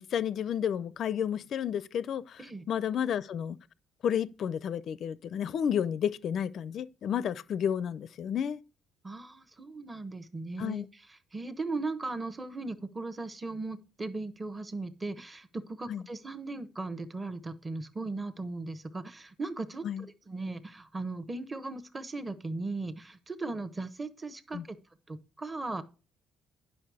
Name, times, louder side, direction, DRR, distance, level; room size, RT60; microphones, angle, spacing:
voice 1, 0.0-2.4 2.7-3.6 4.0-8.6 10.6-10.9 15.9-16.0 19.8-20.0 24.5-24.6, left 8 dB, 45° left, 0.5 m, -31 dB
voice 2, 9.0-10.9 11.3-24.8 25.1-25.8, right 3 dB, 15° right, 1.0 m, -37 dB
11.0 x 6.1 x 4.8 m
cardioid pair, 170°, 0 cm